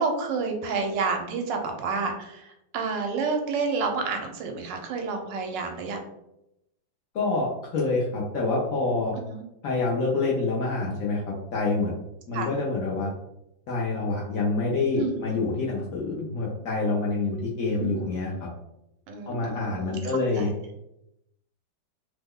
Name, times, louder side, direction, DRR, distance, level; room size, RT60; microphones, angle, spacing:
voice 1, 0.0-6.0 9.2-9.4 12.3-12.5 15.0-15.2 17.5-18.1 19.1-20.4, right 4 dB, 80° right, 4 dB, 1.3 m, -30 dB
voice 2, 7.1-9.1 9.6-11.9 12.3-13.1 13.7-18.5 19.3-20.5, left 3 dB, 65° left, -4 dB, 0.8 m, -27 dB
3.2 x 2.1 x 3.5 m, 0.85 s
omnidirectional pair, 1.9 m